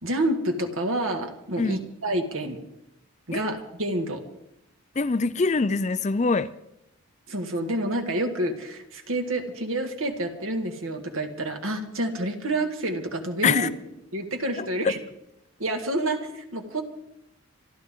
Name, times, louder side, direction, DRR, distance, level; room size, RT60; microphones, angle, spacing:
voice 1, 0.0-2.6 3.3-4.2 7.3-13.7 14.1-15.0 15.6-16.8, right 1 dB, 70° right, 4 dB, 1.9 m, -28 dB
voice 2, 5.0-6.5 13.4-13.7 14.6-14.9, left 4 dB, 35° left, 14 dB, 0.4 m, -24 dB
26.5 x 12.0 x 3.8 m, 0.83 s
head